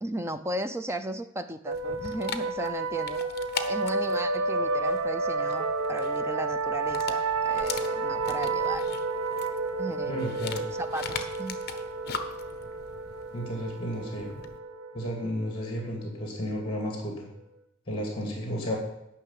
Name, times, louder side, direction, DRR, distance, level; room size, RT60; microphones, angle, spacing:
voice 1, 0.0-3.2 3.7-8.9 9.8-10.2 10.8-11.6, right 1 dB, 10° right, 11 dB, 0.4 m, -35 dB
Dog, 1.7-14.6, left 5 dB, 45° left, 0.8 m, -41 dB
sound 1, 1.7-17.0, right 3 dB, 70° right, 0.9 m, -31 dB
voice 2, 10.1-10.6 13.3-14.3 14.9-17.3 17.9-18.8, equal, 25° left, 1 dB, 2.4 m, -32 dB
10.0 x 5.8 x 8.2 m, 0.82 s
head